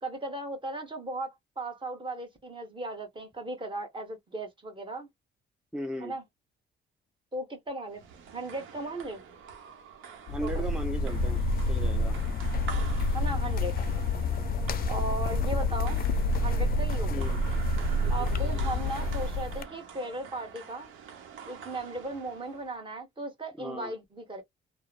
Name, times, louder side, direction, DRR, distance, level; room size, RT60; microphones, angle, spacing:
voice 1, 0.0-5.1 6.0-6.2 7.3-8.0 8.3-9.2 10.4-10.7 13.1-13.7 14.9-16.0 16.4-17.3 18.1-20.9 21.5-24.4, right 2 dB, 25° right, 1.2 m, -37 dB
voice 2, 5.7-6.2 10.3-11.4 11.7-12.2 17.1-17.4 23.6-23.9, equal, 5° right, 0.5 m, -36 dB
sound 1, 7.9-22.8, right 6 dB, 85° right, 0.8 m, -46 dB
sound 2, 10.3-19.6, left 2 dB, 50° left, 0.4 m, -28 dB
3.0 x 2.0 x 2.3 m
cardioid pair, 90°, 20 cm